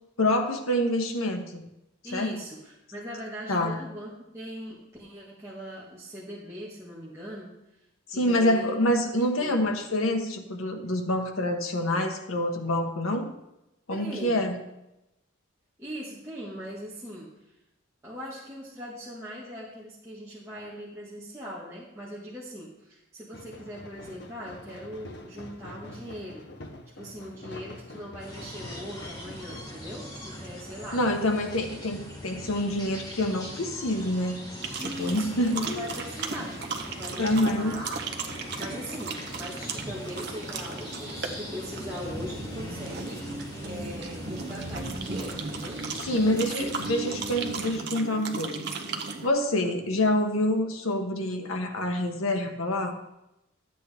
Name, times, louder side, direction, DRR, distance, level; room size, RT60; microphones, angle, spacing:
voice 1, 0.2-1.6 2.1-2.4 3.5-3.8 8.1-13.3 13.9-14.6 30.9-34.5 34.8-35.9 37.2-37.8 46.1-48.7 49.2-53.0, left 1 dB, 85° left, 4 dB, 1.2 m, -27 dB
voice 2, 2.0-7.5 8.1-8.8 9.1-9.6 13.9-14.4 15.8-17.3 18.0-26.5 27.0-31.0 34.8-37.9 38.6-43.2 43.6-46.7 49.5-49.7, equal, 15° right, -7 dB, 1.5 m, -40 dB
sound 1, 23.3-29.6, left 2 dB, 55° left, 0.9 m, -45 dB
sound 2, 28.2-47.7, equal, 20° left, 1.8 m, -41 dB
sound 3, 34.6-49.3, right 4 dB, 50° right, 0.9 m, -36 dB
12.0 x 8.4 x 3.5 m, 0.90 s
head